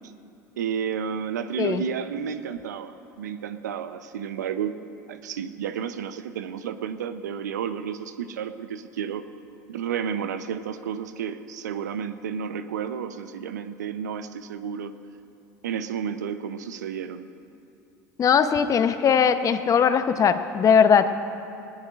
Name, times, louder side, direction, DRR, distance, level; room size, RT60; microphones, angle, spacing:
voice 1, 0.6-4.7 5.1-9.2 9.7-14.9 15.6-17.3, right 7 dB, 85° right, 11 dB, 0.7 m, -31 dB
voice 2, 18.2-21.1, left 7 dB, 40° left, 10 dB, 0.8 m, -19 dB
19.5 x 18.0 x 2.5 m, 2.7 s
hypercardioid pair, 80°, 9 cm